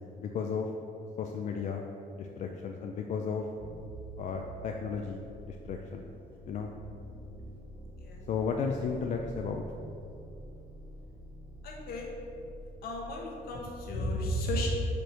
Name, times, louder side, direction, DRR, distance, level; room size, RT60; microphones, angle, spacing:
voice 1, 0.2-0.7 1.2-1.9 2.1-3.5 4.2-6.1 6.5-6.7 8.3-9.6, left 5 dB, 50° left, 2 dB, 0.4 m, -34 dB
sound 1, 3.6-14.0, right 1 dB, 65° right, 1.0 m, -47 dB
voice 2, 11.6-12.1 12.8-14.7, equal, 70° left, -1 dB, 1.3 m, -34 dB
5.1 x 4.5 x 6.1 m, 2.6 s
cardioid pair, 175°, 16 cm